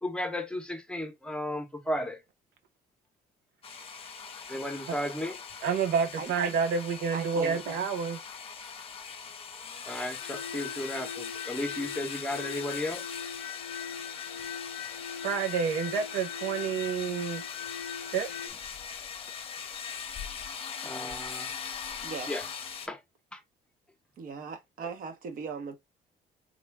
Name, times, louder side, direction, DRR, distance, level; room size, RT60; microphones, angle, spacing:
voice 1, 0.0-2.2 4.5-5.4 9.9-13.0 20.8-21.6 21.8-21.9 22.3-22.4 22.9-23.0 23.3-23.4, left 1 dB, 5° left, 0.9 m, -34 dB
sound 1, 3.6-22.9, left 6 dB, 35° left, 0.8 m, -41 dB
voice 2, 5.6-8.2 15.1-17.4 18.1-18.4, right 6 dB, 90° right, 0.9 m, -29 dB
voice 3, 7.1-7.6 8.6-8.8 22.0-22.3 24.2-25.8, right 5 dB, 55° right, 1.0 m, -39 dB
sound 2, 10.2-18.5, left 7 dB, 80° left, 0.5 m, -41 dB
3.8 x 2.2 x 3.4 m
cardioid pair, 110°, 17 cm